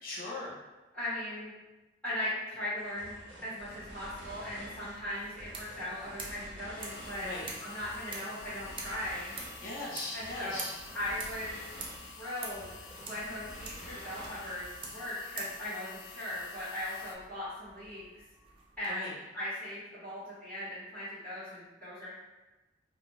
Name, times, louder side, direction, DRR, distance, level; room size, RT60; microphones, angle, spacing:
voice 1, 0.0-0.6 7.2-7.4 9.6-10.8 18.9-19.1, left 2 dB, 55° left, -5 dB, 0.8 m, -39 dB
voice 2, 0.9-1.5 2.0-3.1 3.4-7.3 7.6-9.3 10.1-10.6 10.9-11.7 12.1-12.6 13.0-18.0 18.8-22.1, left 1 dB, 5° left, -16 dB, 1.2 m, -38 dB
sound 1, 2.8-15.0, equal, 80° right, 0.7 m, -50 dB
sound 2, 4.2-18.9, right 3 dB, 30° right, 0.4 m, -48 dB
sound 3, 6.8-17.2, left 5 dB, 80° left, 0.4 m, -50 dB
2.5 x 2.1 x 3.3 m, 1.1 s
head